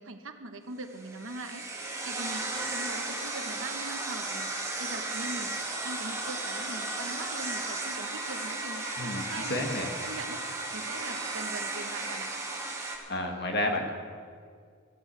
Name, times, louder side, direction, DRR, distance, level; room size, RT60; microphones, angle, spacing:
voice 1, 0.0-9.8 10.0-10.4 10.7-12.3, right 2 dB, 70° right, 6 dB, 1.2 m, -42 dB
sound 1, 0.9-13.0, right 2 dB, 15° right, 1.9 m, -35 dB
voice 2, 9.0-9.9 13.1-13.9, left 1 dB, 50° left, 3 dB, 1.7 m, -31 dB
14.0 x 9.3 x 8.1 m, 2.1 s
head